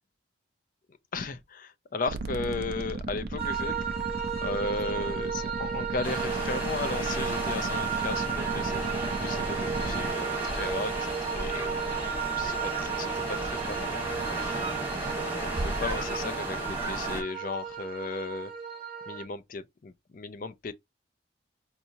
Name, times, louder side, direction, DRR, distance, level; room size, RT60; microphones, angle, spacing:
voice 1, 1.1-3.9 4.4-11.8 12.2-14.8 15.2-18.5 19.1-20.7, left 3 dB, 45° left, 0.4 m, -36 dB
sound 1, 2.1-10.1, right 2 dB, 55° right, 0.4 m, -36 dB
sound 2, 3.4-19.2, right 7 dB, 30° right, 0.8 m, -34 dB
sound 3, 6.0-17.2, right 1 dB, 10° right, 1.6 m, -34 dB
4.5 x 2.8 x 2.7 m
head